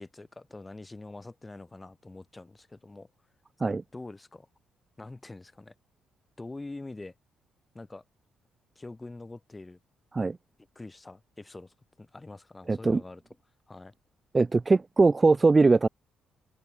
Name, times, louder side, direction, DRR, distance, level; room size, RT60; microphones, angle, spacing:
voice 1, 0.0-3.1 3.9-4.5 5.0-5.7 6.4-7.1 7.7-8.0 8.8-9.8 10.7-13.2 13.7-13.9, left 2 dB, 20° left, 7.8 m, -44 dB
voice 2, 12.7-13.0 14.3-15.9, right 3 dB, 25° right, 1.2 m, -21 dB
cardioid pair, 90°, 0 cm